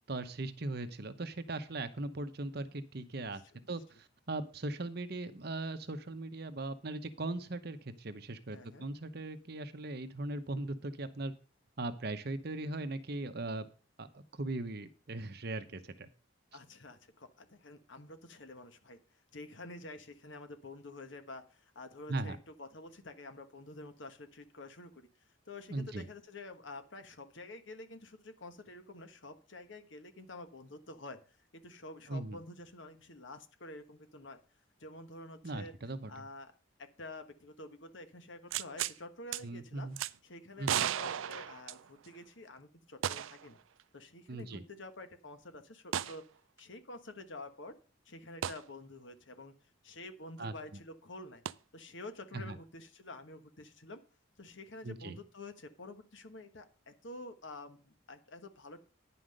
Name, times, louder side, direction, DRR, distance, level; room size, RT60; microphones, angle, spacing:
voice 1, 0.1-3.4 3.7-3.8 4.3-11.3 11.8-13.7 14.0-16.1 22.1-22.4 25.7-26.0 32.1-32.4 35.4-36.1 39.4-40.0 40.6-40.8 44.3-44.6 50.4-50.5 52.3-52.6 54.8-55.1, right 2 dB, 50° right, 11 dB, 0.9 m, -39 dB
voice 2, 3.2-3.7 8.5-8.8 16.5-19.0 19.3-25.1 25.5-34.4 34.8-35.7 36.1-36.5 36.8-39.9 40.2-43.6 43.9-46.2 46.6-47.8 48.0-49.5 49.8-51.4 51.7-54.0 54.4-58.8, left 2 dB, 65° left, 9 dB, 1.3 m, -49 dB
sound 1, 38.5-39.0 39.3-39.4 40.0-40.1 40.6-42.2 43.0-43.5 43.8-43.9 45.9-46.2 48.4-48.6 51.5-51.6, right 10 dB, 75° right, 0.4 m, -35 dB
10.0 x 5.7 x 6.5 m, 0.37 s
head